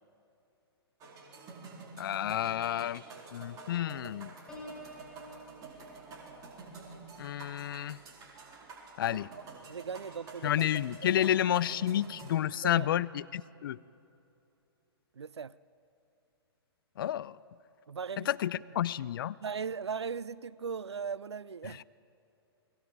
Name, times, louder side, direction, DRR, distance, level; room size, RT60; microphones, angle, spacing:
sound 1, 1.0-12.3, right 4 dB, 25° right, 4.2 m, -49 dB
voice 1, 2.0-3.0 3.3-4.3 7.2-8.0 9.0-9.3 10.4-13.8 17.0-17.4 18.3-19.4, left 11 dB, 55° left, 19 dB, 0.6 m, -30 dB
Piano, 4.5-10.1 10.6-10.9, equal, 5° left, 5.3 m, -53 dB
voice 2, 9.7-10.5 11.0-11.1 12.6-12.9 15.2-15.6 17.9-18.6 19.4-21.8, right 6 dB, 85° right, 21 dB, 0.5 m, -38 dB
29.5 x 21.5 x 4.8 m, 2.7 s
figure-of-eight pair, 120°, 14 cm